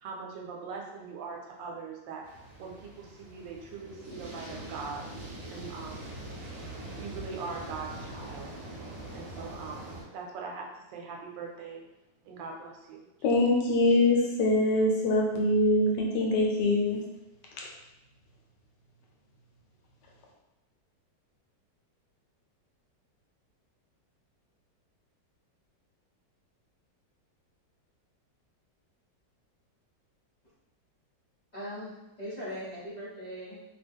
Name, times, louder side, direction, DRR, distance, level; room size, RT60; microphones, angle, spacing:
voice 1, 0.0-2.2 2.6-5.1 5.5-6.2 7.0-8.5 9.1-11.8 12.2-13.1, right 4 dB, 90° right, -1 dB, 1.3 m, -41 dB
sound 1, 2.2-10.0, right 1 dB, 55° right, 1.1 m, -43 dB
voice 2, 13.2-17.0, left 2 dB, 75° left, -1 dB, 1.2 m, -24 dB
voice 3, 31.5-33.6, equal, 35° left, -10 dB, 0.8 m, -40 dB
2.9 x 2.2 x 3.5 m, 0.97 s
omnidirectional pair, 2.0 m